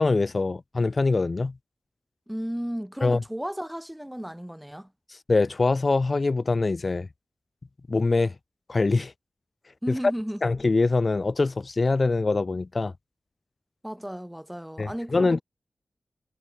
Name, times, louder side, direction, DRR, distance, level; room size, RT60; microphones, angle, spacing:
voice 1, 0.0-1.5 3.0-3.2 5.3-7.1 7.9-8.3 8.7-9.1 10.4-12.9 14.8-15.4, left 3 dB, 45° left, 0.3 m, -23 dB
voice 2, 2.3-4.9 9.8-10.4 13.8-15.4, equal, 5° right, 3.2 m, -34 dB
wide cardioid pair, 70°, 0 cm